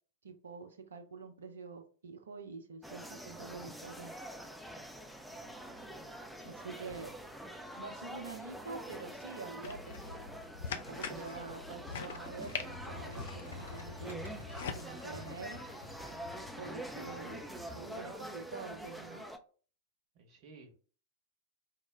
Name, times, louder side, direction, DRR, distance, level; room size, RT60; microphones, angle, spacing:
voice 1, 0.2-4.1 6.4-7.1 7.7-10.2 10.7-14.3 14.8-15.6 16.6-17.4 17.7-19.3, right 4 dB, 70° right, 0.7 m, -46 dB
sound 1, 2.8-19.4, right 1 dB, ahead, 0.5 m, -46 dB
voice 2, 5.2-5.8 6.7-7.2 20.1-20.7, right 4 dB, 45° right, 1.0 m, -56 dB
sound 2, 9.6-14.8, left 6 dB, 60° left, 0.4 m, -43 dB
sound 3, 12.2-17.8, left 3 dB, 90° right, 1.0 m, -50 dB
4.6 x 2.1 x 3.3 m
figure-of-eight pair, 90°, 0 cm